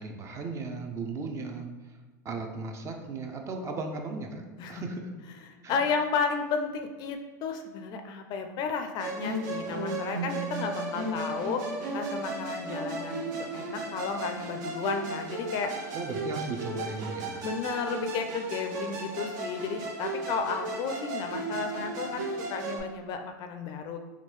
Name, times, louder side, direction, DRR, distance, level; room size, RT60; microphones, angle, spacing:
voice 1, 0.0-2.0 2.2-5.1 5.6-5.8 15.9-17.5, right 3 dB, 30° right, 4 dB, 0.4 m, -36 dB
voice 2, 5.7-11.7 11.9-15.8 17.4-24.0, left 5 dB, 40° left, 6 dB, 0.4 m, -33 dB
Musical instrument, 9.0-22.8, right 2 dB, 65° right, 0.7 m, -35 dB
3.5 x 2.3 x 3.1 m, 1.2 s
hypercardioid pair, 110°, 10 cm